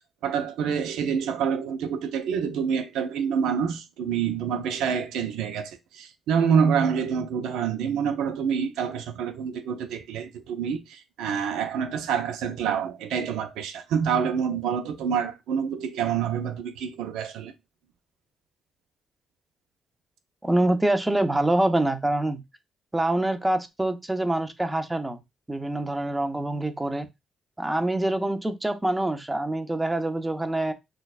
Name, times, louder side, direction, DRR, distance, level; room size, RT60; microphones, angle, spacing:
voice 1, 0.2-17.5, right 7 dB, 90° right, 0.6 m, -27 dB
voice 2, 20.4-22.4 22.9-25.2 25.5-27.1 27.6-30.7, right 1 dB, 15° right, 0.6 m, -25 dB
6.2 x 2.3 x 2.4 m
cardioid pair, 90°, 0 cm